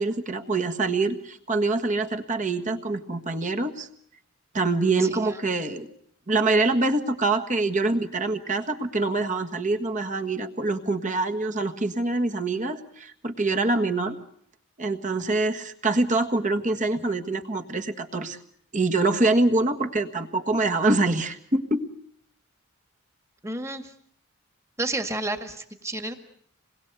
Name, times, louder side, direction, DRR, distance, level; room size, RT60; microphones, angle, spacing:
voice 1, 0.0-3.9 4.5-5.9 6.3-14.2 14.8-18.4 18.7-21.9, right 2 dB, 35° right, 6 dB, 1.6 m, -25 dB
voice 2, 5.0-5.4 23.4-23.9 24.8-26.1, right 2 dB, 15° right, 7 dB, 1.9 m, -31 dB
27.0 x 21.5 x 8.2 m, 0.65 s
head